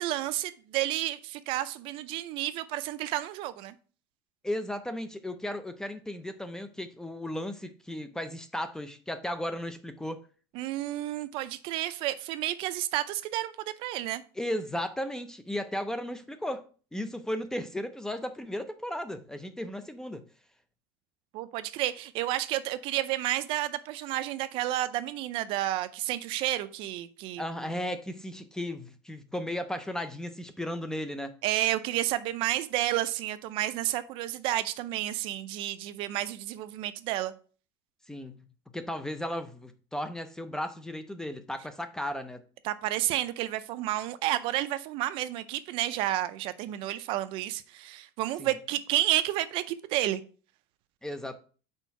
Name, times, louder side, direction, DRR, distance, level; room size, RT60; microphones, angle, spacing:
voice 1, 0.0-3.7 10.5-14.2 21.3-27.4 31.4-37.3 42.6-50.2, right 14 dB, 50° right, 0.5 m, -31 dB
voice 2, 4.4-10.2 14.4-16.7 16.9-20.2 27.4-31.4 38.1-38.4 38.7-42.4 48.4-48.5 51.0-51.4, left 1 dB, 5° left, 0.4 m, -35 dB
4.5 x 4.4 x 5.7 m
cardioid pair, 155°, 11 cm